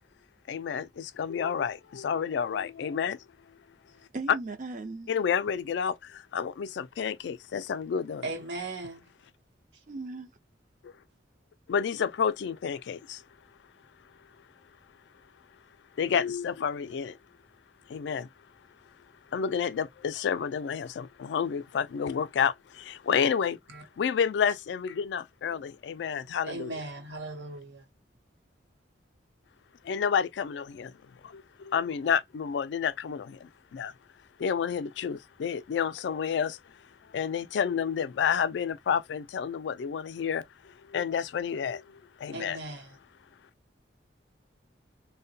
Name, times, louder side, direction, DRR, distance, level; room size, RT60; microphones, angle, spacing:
voice 1, 0.5-3.2 5.1-8.3 10.8-10.9 11.7-13.2 16.0-17.2 17.9-18.3 19.3-23.6 24.0-26.8 29.8-31.0 31.2-33.9 34.4-42.6, left 7 dB, 75° left, 0.3 m, -30 dB
voice 2, 4.1-5.1 9.9-10.3, right 3 dB, 45° right, 0.5 m, -37 dB
voice 3, 8.2-9.1 23.7-23.8 26.4-27.8 42.3-42.9, right 2 dB, 90° right, 0.9 m, -38 dB
2.8 x 2.1 x 2.6 m
head